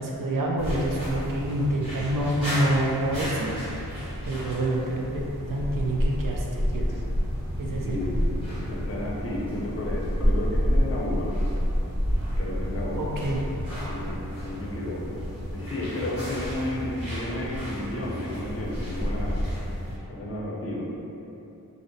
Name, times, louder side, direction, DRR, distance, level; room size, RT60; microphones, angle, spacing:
voice 1, 0.0-3.5 4.3-7.0 7.6-8.0 12.9-13.4, right 1 dB, 60° right, -2 dB, 0.4 m, -27 dB
sound 1, 0.6-20.0, equal, 85° right, 1.3 m, -30 dB
voice 2, 7.8-11.5 12.4-13.1 13.9-15.1 15.5-19.4 20.1-20.9, left 1 dB, 40° left, -4 dB, 0.5 m, -32 dB
2.6 x 2.0 x 2.6 m, 2.8 s
wide cardioid pair, 50°, 38 cm